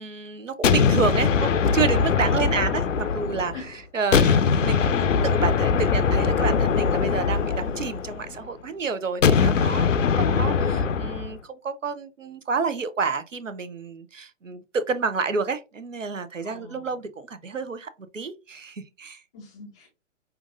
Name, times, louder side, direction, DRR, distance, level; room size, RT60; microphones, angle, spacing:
voice 1, 0.0-19.2, right 5 dB, 85° right, 0.7 m, -29 dB
sound 1, 0.6-3.7 4.1-8.4 9.2-11.3, left 6 dB, 80° left, 0.5 m, -21 dB
voice 2, 16.4-16.9 19.3-19.9, left 3 dB, 5° left, 0.3 m, -44 dB
5.7 x 2.6 x 2.4 m
figure-of-eight pair, 120°, 37 cm